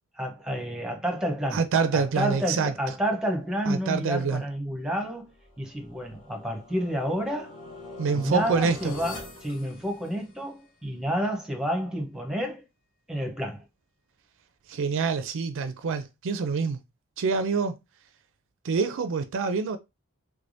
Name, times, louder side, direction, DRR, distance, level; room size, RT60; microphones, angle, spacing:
voice 1, 0.2-1.6 1.9-7.5 8.1-12.6 13.1-13.6, equal, 5° right, 0.8 m, -30 dB
voice 2, 1.5-2.7 3.7-4.4 8.0-8.9 14.7-16.8 17.2-17.8 18.6-19.8, right 5 dB, 60° right, 0.4 m, -26 dB
sound 1, 5.4-10.6, left 2 dB, 45° left, 1.5 m, -44 dB
3.3 x 3.3 x 2.6 m
head